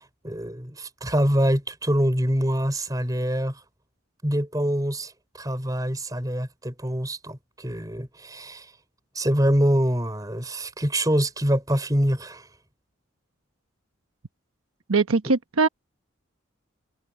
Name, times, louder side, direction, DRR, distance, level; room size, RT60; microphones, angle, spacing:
voice 1, 0.0-3.6 4.2-8.7 9.1-12.5, equal, 15° right, 4.8 m, -25 dB
voice 2, 14.9-15.7, right 4 dB, 90° right, 1.1 m, -21 dB
head